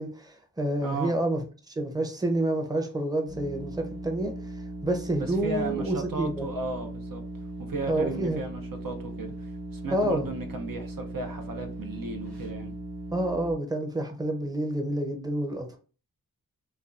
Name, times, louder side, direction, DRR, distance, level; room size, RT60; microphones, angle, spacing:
voice 1, 0.0-4.3 4.8-6.5 7.8-8.4 9.9-10.3 13.1-15.8, right 1 dB, 10° right, 0.6 m, -28 dB
voice 2, 0.8-1.1 5.2-7.2 7.6-12.7, right 3 dB, 65° right, 0.6 m, -35 dB
sound 1, 3.3-13.5, right 1 dB, 80° right, 1.0 m, -38 dB
3.3 x 2.3 x 2.4 m
wide cardioid pair, 45°, 37 cm